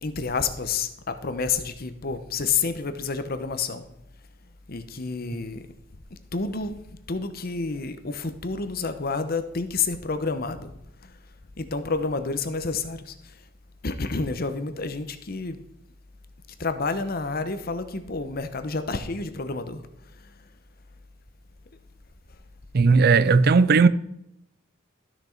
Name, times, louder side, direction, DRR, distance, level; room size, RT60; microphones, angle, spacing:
voice 1, 0.0-3.8 4.7-5.7 6.1-6.8 7.1-10.7 11.0-11.2 11.6-13.4 13.8-15.6 16.6-19.8 20.2-20.3, left 4 dB, 50° left, 0.9 m, -29 dB
voice 2, 22.7-23.9, right 4 dB, 50° right, 0.5 m, -16 dB
13.0 x 6.1 x 4.5 m
head